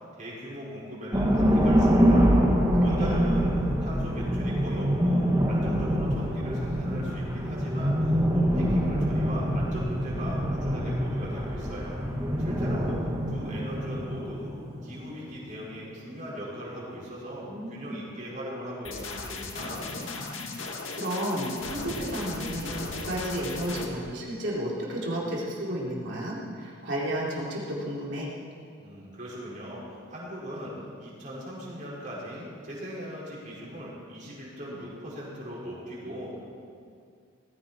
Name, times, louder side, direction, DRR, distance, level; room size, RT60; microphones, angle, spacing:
voice 1, 0.2-2.3 2.8-3.5 3.8-12.0 12.4-13.0 13.3-14.5 14.8-19.9 28.8-30.7 31.0-36.3, equal, 40° right, -6 dB, 5.3 m, -39 dB
sound 1, 1.1-15.4, equal, 15° right, 1.8 m, -25 dB
voice 2, 2.2-3.3 17.4-17.9 20.9-28.3, equal, 60° right, -5 dB, 4.0 m, -32 dB
sound 2, 18.8-23.8, left 3 dB, 75° left, 1.9 m, -36 dB
19.0 x 15.5 x 4.5 m, 2.3 s
head